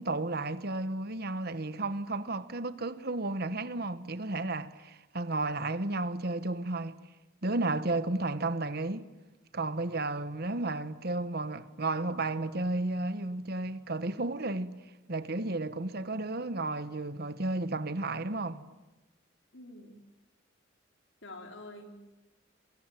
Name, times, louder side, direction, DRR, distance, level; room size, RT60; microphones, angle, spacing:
voice 1, 0.0-7.0 7.4-9.1 9.5-14.8 15.1-18.6, right 2 dB, 50° right, 1.3 m, -33 dB
voice 2, 19.5-20.0 21.2-21.9, left 2 dB, 70° left, 4.6 m, -46 dB
27.0 x 24.0 x 9.2 m
head